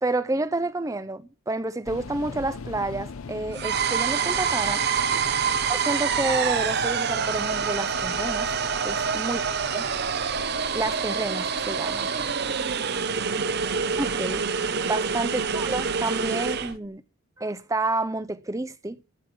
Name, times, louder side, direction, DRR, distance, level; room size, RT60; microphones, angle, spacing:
voice 1, 0.0-4.8 5.7-8.5 8.8-9.4 9.7-9.9 10.7-12.1 14.0-14.4 14.8-17.0 17.4-19.0, right 2 dB, 15° right, 0.5 m, -29 dB
sound 1, 1.8-16.8, left 4 dB, 80° left, 0.6 m, -41 dB
sound 2, 3.5-16.7, right 6 dB, 50° right, 0.7 m, -26 dB
voice 2, 8.9-9.3 11.7-13.7, right 1 dB, 80° right, 4.5 m, -50 dB
14.5 x 6.2 x 8.3 m
head